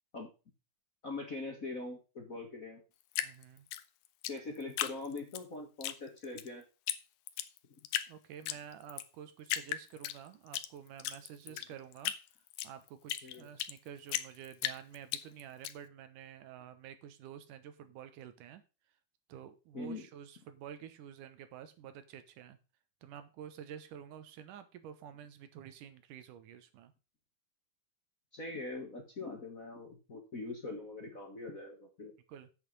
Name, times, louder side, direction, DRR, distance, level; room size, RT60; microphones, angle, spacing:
voice 1, 1.0-2.8 4.3-6.6 11.5-11.6 13.2-13.5 19.7-20.1 28.3-32.1, left 3 dB, 40° left, 3 dB, 1.2 m, -42 dB
Drip, 3.1-5.4 5.8-6.5 6.9-7.0 7.3-8.1 8.5-9.1 9.5-10.7 11.0-13.8 14.1-15.7, left 13 dB, 80° left, 2.2 m, -36 dB
voice 2, 3.2-3.7 8.1-12.1 12.6-18.6 19.3-22.6 23.0-26.9 32.3-32.5, right 9 dB, 80° right, 11 dB, 2.6 m, -49 dB
8.1 x 8.0 x 5.3 m, 0.32 s
omnidirectional pair, 3.7 m